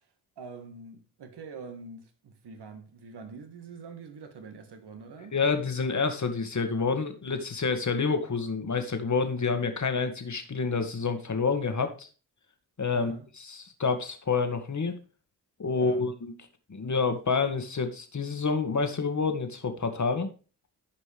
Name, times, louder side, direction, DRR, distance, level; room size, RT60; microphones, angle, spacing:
voice 1, 0.4-5.3 12.9-13.3 15.7-16.1, right 4 dB, 60° right, 1.8 m, -44 dB
voice 2, 5.3-12.1 12.8-14.9 15.6-16.3 16.7-20.3, left 4 dB, 40° left, 1.8 m, -28 dB
13.0 x 5.3 x 3.5 m
hypercardioid pair, 40°, 45 cm